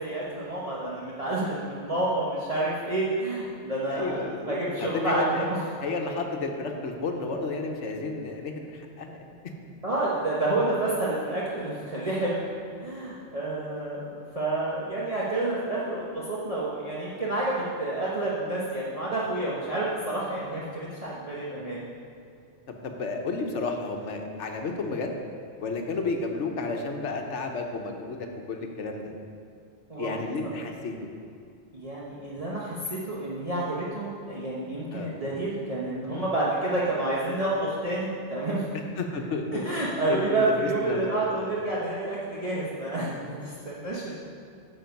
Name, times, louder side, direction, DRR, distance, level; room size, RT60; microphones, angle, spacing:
voice 1, 0.0-5.6 9.8-12.4 12.8-21.9 29.9-30.2 31.7-38.6 39.5-44.2, right 2 dB, 30° right, -7 dB, 1.1 m, -29 dB
voice 2, 3.9-5.5 5.8-9.3 22.7-25.2 25.6-29.1 30.0-31.1 34.9-35.2 39.0-39.6 40.1-40.5 40.9-41.5, left 3 dB, 75° left, 3 dB, 1.2 m, -32 dB
9.0 x 6.6 x 5.3 m, 2.3 s
omnidirectional pair, 1.2 m